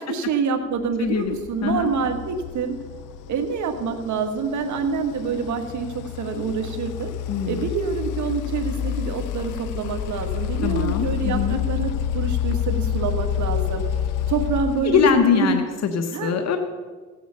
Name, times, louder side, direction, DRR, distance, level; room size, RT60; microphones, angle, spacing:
voice 1, 0.1-2.8 3.3-7.1 7.5-13.9 14.3-15.6 16.1-16.4, right 5 dB, 70° right, 6 dB, 1.9 m, -26 dB
voice 2, 1.0-1.4 1.6-1.9 7.3-7.7 10.6-11.6 14.8-16.6, left 6 dB, 60° left, 6 dB, 1.3 m, -22 dB
sound 1, 1.1-15.5, left 10 dB, 85° left, 0.6 m, -29 dB
16.0 x 9.3 x 6.7 m, 1.4 s
cardioid pair, 90°, 30 cm